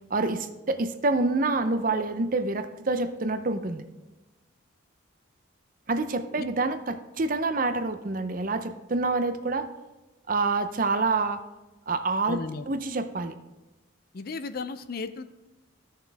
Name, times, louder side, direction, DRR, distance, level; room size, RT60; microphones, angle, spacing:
voice 1, 0.1-3.8 5.9-9.7 10.3-11.4 11.9-12.4 12.7-13.3, right 3 dB, 40° right, 9 dB, 0.6 m, -27 dB
voice 2, 12.3-12.7 14.1-15.2, left 4 dB, 45° left, 11 dB, 0.4 m, -34 dB
14.0 x 6.6 x 3.4 m, 1.1 s
head